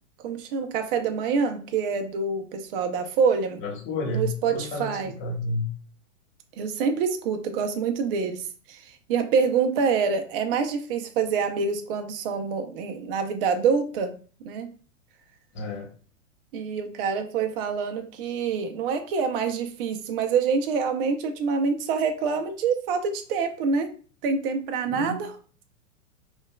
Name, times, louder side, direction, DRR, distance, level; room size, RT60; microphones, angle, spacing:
voice 1, 0.2-3.6 4.1-5.1 6.6-14.1 14.4-14.7 16.5-23.9 24.2-25.3, right 5 dB, 45° right, 6 dB, 0.6 m, -26 dB
voice 2, 3.6-5.7 15.5-15.9 24.9-25.2, left 2 dB, 30° left, 0 dB, 1.2 m, -31 dB
5.2 x 2.4 x 2.2 m, 0.40 s
hypercardioid pair, 125°, 40 cm